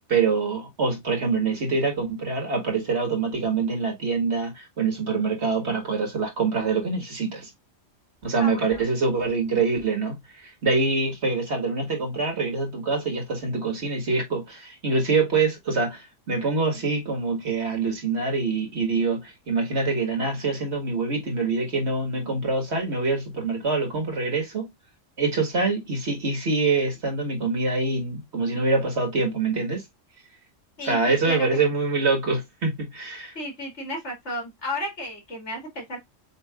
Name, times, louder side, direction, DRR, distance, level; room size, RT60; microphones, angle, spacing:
voice 1, 0.1-7.5 8.2-24.7 25.2-29.8 30.8-33.3, right 4 dB, 55° right, 1.9 m, -25 dB
voice 2, 8.4-8.8 30.8-31.5 33.3-36.0, equal, 60° left, 2.5 m, -33 dB
7.4 x 2.9 x 2.4 m
omnidirectional pair, 1.3 m